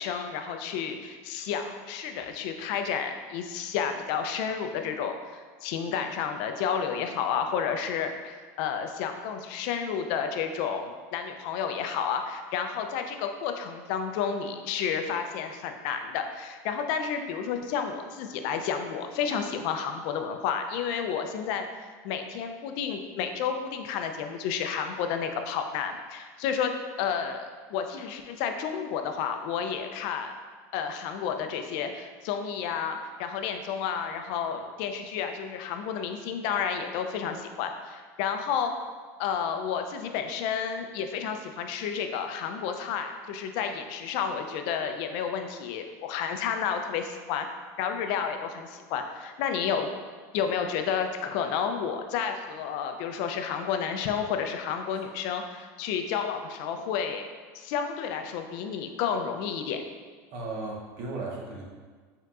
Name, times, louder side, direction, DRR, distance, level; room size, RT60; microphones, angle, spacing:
voice 1, 0.0-21.7 22.0-26.7 27.0-30.3 30.7-38.7 39.2-47.5 47.8-49.9 50.3-57.2 57.5-59.8, left 7 dB, 65° left, 6 dB, 0.4 m, -31 dB
voice 2, 60.3-61.6, right 3 dB, 60° right, -2 dB, 0.9 m, -36 dB
4.6 x 3.6 x 2.4 m, 1.5 s
supercardioid pair, 135°, 8 cm